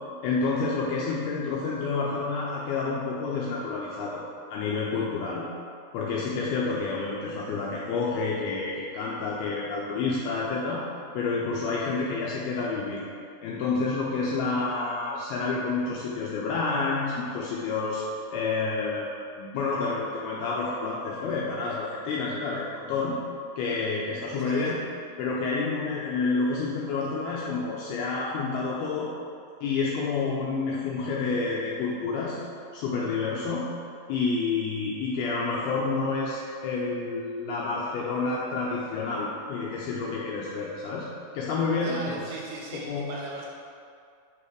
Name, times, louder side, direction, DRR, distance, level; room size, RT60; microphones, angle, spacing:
voice 1, 0.2-4.2 4.5-5.4 5.9-10.8 11.1-13.0 13.4-18.0 18.3-23.2 23.6-24.8 25.2-29.1 29.6-32.4 32.7-33.7 34.1-41.1 41.3-42.3 42.7-43.1, left 4 dB, 85° left, -4 dB, 2.2 m, -29 dB
voice 2, 41.8-43.5, right 3 dB, 80° right, -3 dB, 2.5 m, -38 dB
8.6 x 5.4 x 3.2 m, 2.3 s
omnidirectional pair, 5.1 m